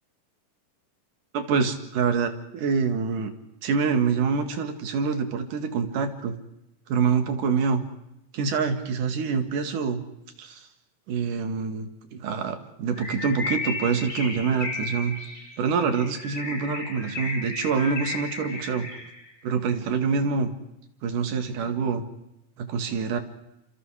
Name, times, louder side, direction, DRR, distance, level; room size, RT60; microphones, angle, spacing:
voice 1, 1.3-3.3 3.6-6.4 6.9-7.8 8.3-10.0 10.4-10.7 11.1-15.2 15.6-18.9 19.4-20.5 21.0-22.0 22.6-23.2, right 5 dB, 70° right, 7 dB, 3.6 m, -26 dB
Bird, 12.9-19.3, left 2 dB, 20° left, 4.3 m, -34 dB
29.0 x 26.5 x 5.0 m, 0.86 s
omnidirectional pair, 3.8 m